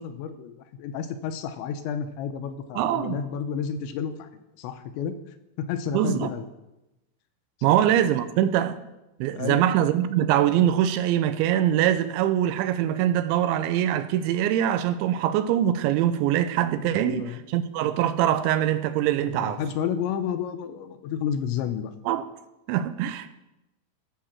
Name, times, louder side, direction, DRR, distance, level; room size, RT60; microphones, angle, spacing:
voice 1, 0.0-4.3 4.6-5.1 5.6-6.5 7.6-7.8 9.3-9.6 16.9-17.4 19.3-21.9, left 8 dB, 85° left, 2.9 m, -31 dB
voice 2, 2.8-3.2 5.9-6.3 7.6-8.8 9.2-19.6 22.1-22.2 22.7-23.3, right 11 dB, 85° right, 2.9 m, -23 dB
15.0 x 5.8 x 7.3 m
omnidirectional pair, 5.4 m